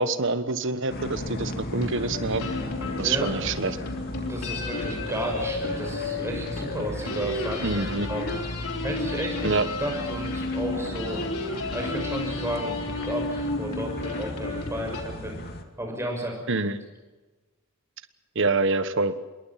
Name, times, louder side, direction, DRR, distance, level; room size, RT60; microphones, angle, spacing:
voice 1, 0.0-2.5 3.0-3.8 7.6-8.1 9.4-9.7 16.5-16.8 18.3-19.1, right 3 dB, 55° right, 11 dB, 1.3 m, -26 dB
sound 1, 0.9-15.6, left 1 dB, 45° left, 2.3 m, -36 dB
sound 2, 1.7-15.0, left 3 dB, 90° left, 3.9 m, -33 dB
voice 2, 4.1-7.8 8.1-8.3 8.8-11.2 11.7-15.4 15.8-16.4, right 1 dB, 10° right, 1 dB, 6.2 m, -33 dB
26.5 x 22.0 x 5.9 m, 1.2 s
head